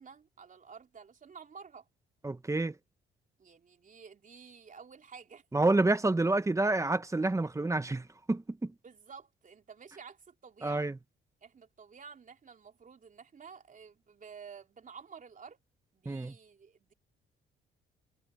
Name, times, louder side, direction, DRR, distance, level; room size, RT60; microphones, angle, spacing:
voice 1, 0.0-1.9 3.4-5.4 8.8-10.9 11.4-15.6 15.9-16.9, right 6 dB, 40° right, 3.7 m, -51 dB
voice 2, 2.2-2.7 5.5-8.7 10.6-10.9 16.0-16.3, right 2 dB, 15° right, 1.2 m, -28 dB
cardioid pair, 90°, 20 cm